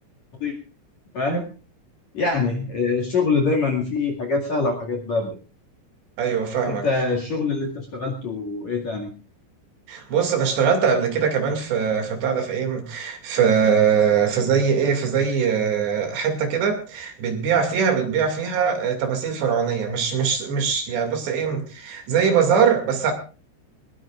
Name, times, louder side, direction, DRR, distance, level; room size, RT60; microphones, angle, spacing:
voice 1, 1.1-1.5 2.1-5.4 6.7-9.1, left 4 dB, 45° left, 3 dB, 2.6 m, -24 dB
voice 2, 6.2-6.9 9.9-23.1, right 6 dB, 60° right, 4 dB, 4.3 m, -22 dB
21.5 x 20.5 x 2.5 m, 0.35 s
omnidirectional pair, 5.8 m